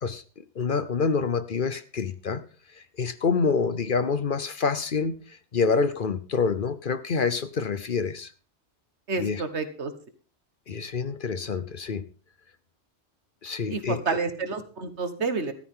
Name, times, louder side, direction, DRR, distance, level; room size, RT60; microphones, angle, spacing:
voice 1, 0.0-2.4 2.7-8.3 9.2-9.4 10.7-12.0 13.4-14.2, left 5 dB, 50° left, 13 dB, 0.9 m, -27 dB
voice 2, 9.1-9.9 13.7-15.5, right 4 dB, 70° right, 9 dB, 1.8 m, -29 dB
14.0 x 13.0 x 3.7 m, 0.38 s
omnidirectional pair, 1.2 m